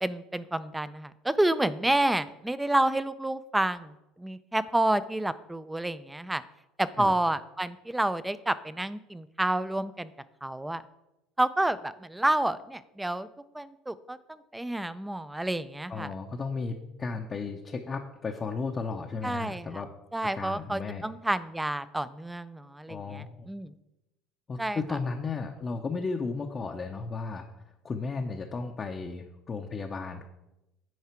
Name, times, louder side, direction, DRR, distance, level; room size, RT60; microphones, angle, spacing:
voice 1, 0.0-6.4 6.8-10.1 10.4-10.8 11.4-13.3 13.5-16.1 19.2-19.8 20.1-23.7 24.6-25.0, right 1 dB, 5° right, 16 dB, 0.4 m, -29 dB
voice 2, 15.9-19.9 20.3-21.1 22.9-23.5 24.5-27.5 27.8-30.2, left 4 dB, 25° left, 2 dB, 0.6 m, -34 dB
9.2 x 4.8 x 4.4 m, 0.94 s
supercardioid pair, 115°, 0 cm